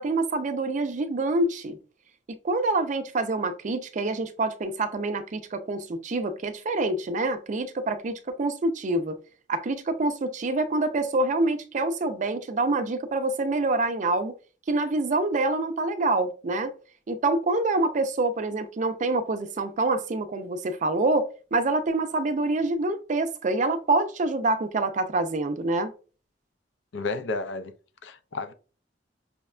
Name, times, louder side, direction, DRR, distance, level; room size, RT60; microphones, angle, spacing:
voice 1, 0.0-1.8 2.4-9.2 9.5-14.3 14.7-16.7 17.1-25.9, right 2 dB, 45° right, 0.4 m, -26 dB
voice 2, 26.9-27.7 28.0-28.5, left 3 dB, 80° left, 0.5 m, -31 dB
5.6 x 2.1 x 2.4 m
head